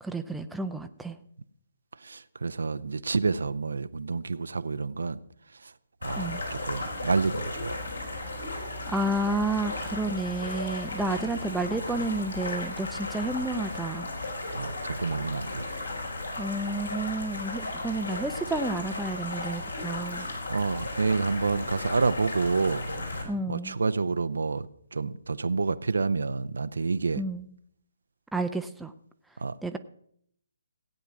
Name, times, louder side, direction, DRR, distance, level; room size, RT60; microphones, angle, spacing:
voice 1, 0.0-1.2 6.2-6.4 8.9-14.1 16.4-20.3 23.2-23.8 27.2-27.5 28.3-28.9 29.6-29.8, right 2 dB, 5° right, 7 dB, 0.6 m, -31 dB
voice 2, 2.0-5.2 5.6-5.7 6.0-7.8 14.5-15.7 20.5-22.9 23.5-24.7 24.9-27.2 29.4-29.6, right 4 dB, 60° right, 14 dB, 0.6 m, -28 dB
sound 1, 6.0-23.2, left 2 dB, 70° left, 4.1 m, -35 dB
16.5 x 9.2 x 6.0 m, 0.67 s
figure-of-eight pair, 135°, 0 cm